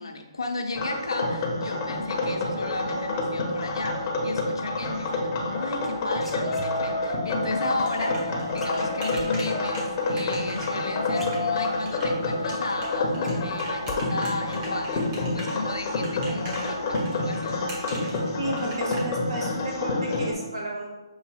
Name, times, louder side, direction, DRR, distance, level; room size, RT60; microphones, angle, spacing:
voice 1, 0.0-17.6, left 2 dB, 75° left, 3 dB, 0.6 m, -34 dB
sound 1, 0.7-20.3, left 2 dB, 30° left, 0.7 m, -28 dB
sound 2, 5.8-7.1 8.6-9.3 10.7-10.8 11.1-11.9 12.3-12.4 12.8-14.0 14.3-14.7, right 2 dB, 5° right, 0.4 m, -41 dB
sound 3, 7.4-19.0, right 1 dB, 30° right, 1.0 m, -41 dB
voice 2, 18.4-20.9, right 1 dB, 65° right, 0 dB, 1.0 m, -32 dB
6.3 x 2.7 x 2.4 m, 1.1 s
figure-of-eight pair, 145°, 3 cm